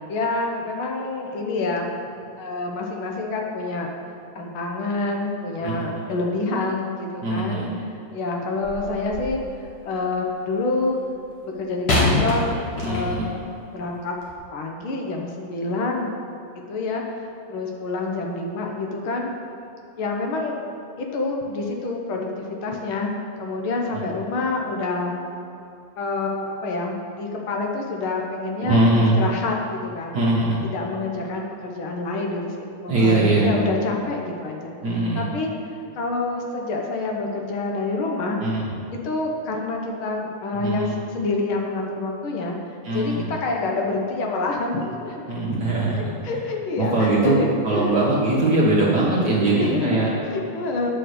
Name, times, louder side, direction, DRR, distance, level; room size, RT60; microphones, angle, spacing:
voice 1, 0.0-1.9 2.4-3.9 4.3-7.7 8.1-11.0 11.4-12.6 12.8-13.4 13.7-14.2 14.5-16.1 16.5-19.3 20.0-20.6 21.0-23.1 23.4-25.1 26.0-28.8 29.2-30.2 30.6-34.7 35.1-35.5 36.0-38.4 39.0-42.6 42.9-45.2 45.9-48.1 49.0-50.9, left 3 dB, 65° left, 1 dB, 1.4 m, -27 dB
voice 2, 5.6-6.1 7.2-7.7 12.8-13.3 28.6-29.2 30.1-30.6 32.9-33.5 34.8-35.3 38.4-38.7 40.5-40.9 42.8-43.3 45.3-46.1 46.8-47.4 47.6-50.1, right 2 dB, 45° right, -5 dB, 1.4 m, -21 dB
sound 1, 8.6-9.5 11.9-13.4 14.2-14.3, left 2 dB, 45° left, 1.9 m, -24 dB
9.9 x 5.3 x 6.6 m, 2.7 s
omnidirectional pair, 3.3 m